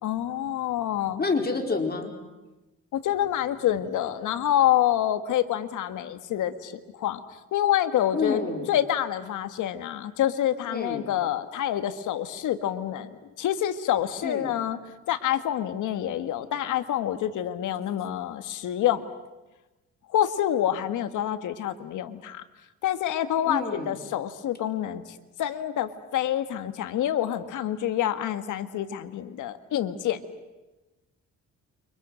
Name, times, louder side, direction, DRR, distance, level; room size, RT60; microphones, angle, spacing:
voice 1, 0.0-1.2 2.9-6.7 7.0-7.2 7.5-8.4 8.7-13.1 13.4-14.8 15.1-19.0 20.1-22.4 22.8-25.0 25.4-30.2, left 11 dB, 80° left, 10 dB, 1.7 m, -27 dB
voice 2, 1.2-2.1 8.1-8.7 10.7-11.1 14.2-14.5 23.4-24.0, left 4 dB, 30° left, 3 dB, 4.5 m, -28 dB
29.0 x 25.5 x 6.4 m, 1.1 s
cardioid pair, 90°, 30 cm